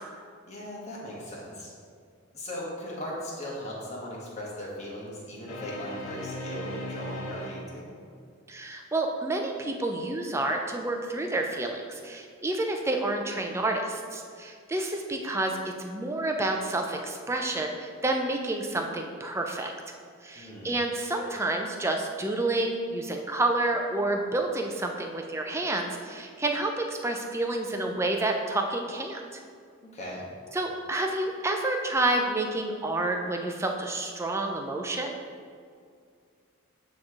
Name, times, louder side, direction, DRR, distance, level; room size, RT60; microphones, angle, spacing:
voice 1, 0.5-1.7 2.3-7.9 20.3-20.7 29.9-30.3, left 1 dB, 30° left, -5 dB, 1.2 m, -38 dB
sound 1, 5.5-8.2, equal, 75° left, 0.9 m, -37 dB
voice 2, 8.5-19.7 20.2-29.4 30.5-35.2, right 2 dB, 15° right, 2 dB, 0.4 m, -29 dB
8.5 x 3.1 x 3.6 m, 2.2 s
head